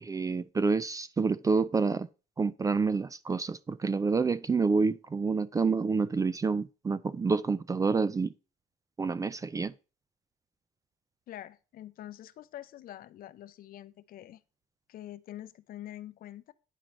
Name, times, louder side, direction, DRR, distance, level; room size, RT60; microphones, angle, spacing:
voice 1, 0.0-2.1 2.4-8.3 9.0-9.7, right 4 dB, 20° right, 0.4 m, -28 dB
voice 2, 11.3-14.4 14.9-16.5, left 13 dB, 60° left, 0.6 m, -45 dB
10.0 x 4.5 x 5.1 m
cardioid pair, 110°, 17 cm